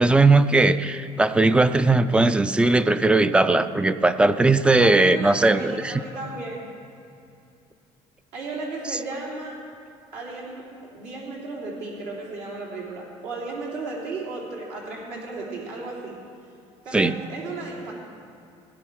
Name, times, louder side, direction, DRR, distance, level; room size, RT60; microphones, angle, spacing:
voice 1, 0.0-5.9 16.9-17.1, right 2 dB, 10° right, 13 dB, 0.3 m, -18 dB
voice 2, 4.8-6.6 8.3-9.7 10.1-10.7 10.9-16.1 16.9-17.9, right 3 dB, 80° right, -3 dB, 3.4 m, -34 dB
17.0 x 10.5 x 4.7 m, 2.5 s
cardioid pair, 150°, 12 cm